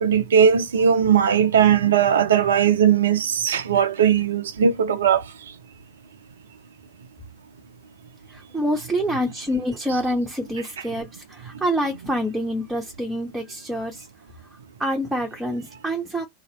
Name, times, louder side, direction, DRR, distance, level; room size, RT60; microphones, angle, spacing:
voice 1, 0.0-5.2 9.9-10.0, right 8 dB, 65° right, 0.5 m, -18 dB
voice 2, 8.5-14.0 14.8-16.3, equal, 5° right, 0.8 m, -26 dB
2.9 x 2.8 x 2.8 m
figure-of-eight pair, 90°, 0 cm